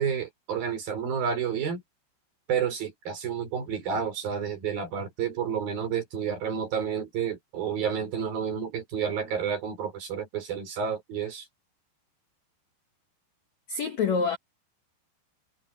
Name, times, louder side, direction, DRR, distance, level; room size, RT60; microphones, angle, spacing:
voice 1, 0.0-1.8 2.5-11.5, right 7 dB, 55° right, 6.0 m, -30 dB
voice 2, 13.7-14.4, left 5 dB, 60° left, 1.9 m, -26 dB
omnidirectional pair, 5.2 m